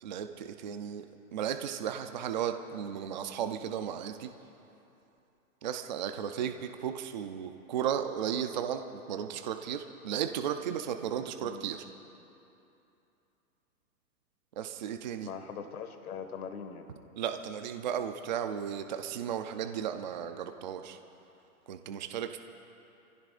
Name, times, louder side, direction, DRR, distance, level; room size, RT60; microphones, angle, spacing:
voice 1, 0.0-1.1 1.3-4.3 5.6-11.8 14.6-15.3 17.2-21.0 21.7-22.4, right 9 dB, 35° right, 7 dB, 0.5 m, -35 dB
voice 2, 15.2-16.9, left 7 dB, 75° left, 7 dB, 1.8 m, -41 dB
29.5 x 15.5 x 2.5 m, 2.9 s
hypercardioid pair, 160°, 44 cm